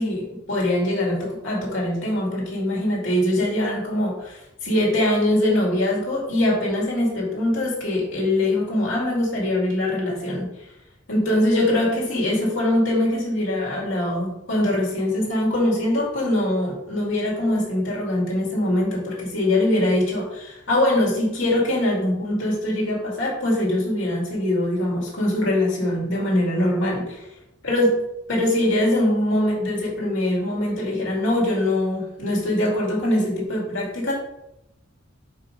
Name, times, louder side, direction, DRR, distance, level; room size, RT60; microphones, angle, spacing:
voice 1, 0.0-10.5 11.1-27.3 27.6-27.9 28.3-34.1, left 1 dB, 70° left, -3 dB, 2.3 m, -22 dB
5.3 x 4.0 x 5.2 m, 0.85 s
head